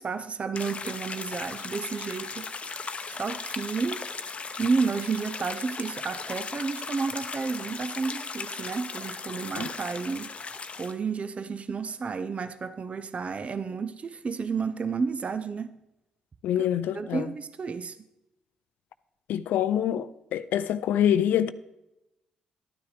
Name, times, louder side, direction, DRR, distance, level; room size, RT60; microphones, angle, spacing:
voice 1, 0.0-2.5 3.1-4.1 4.6-10.3 10.8-15.8 16.6-16.7 16.9-18.0, right 5 dB, 40° right, 0.6 m, -31 dB
sound 1, 0.5-10.9, left 4 dB, 40° left, 0.7 m, -37 dB
voice 2, 16.4-17.3 19.3-21.5, left 10 dB, 70° left, 0.4 m, -25 dB
12.0 x 9.4 x 3.3 m
hypercardioid pair, 45°, 3 cm